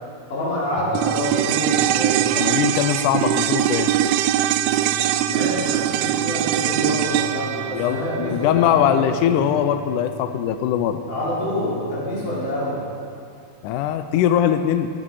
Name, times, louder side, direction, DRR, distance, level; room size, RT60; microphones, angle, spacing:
voice 1, 0.3-2.2 5.3-9.4 11.1-12.8, left 1 dB, 60° left, -8 dB, 5.7 m, -27 dB
sound 1, 0.7-12.5, right 2 dB, 45° left, 5.6 m, -40 dB
sound 2, 1.0-9.4 9.7-9.8, right 12 dB, 85° right, 2.4 m, -22 dB
voice 2, 2.4-3.9 7.7-11.0 13.6-14.9, left 10 dB, 85° left, 9 dB, 1.9 m, -21 dB
18.5 x 11.5 x 4.9 m, 2.4 s
omnidirectional pair, 4.2 m